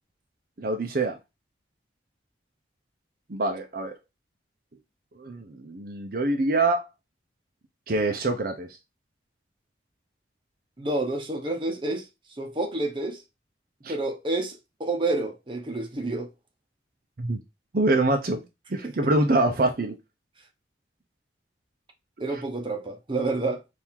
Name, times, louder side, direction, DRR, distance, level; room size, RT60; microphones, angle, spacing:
voice 1, 0.6-1.2 3.3-3.9 5.2-6.9 7.9-8.7 13.8-14.0 17.2-17.4 17.7-18.4 18.7-20.0 22.3-22.4, right 2 dB, 50° right, 0.7 m, -25 dB
voice 2, 10.8-12.1 12.4-13.2 13.9-16.3 18.8-19.1 22.2-23.6, right 2 dB, 30° right, 0.9 m, -29 dB
4.5 x 2.7 x 3.6 m
head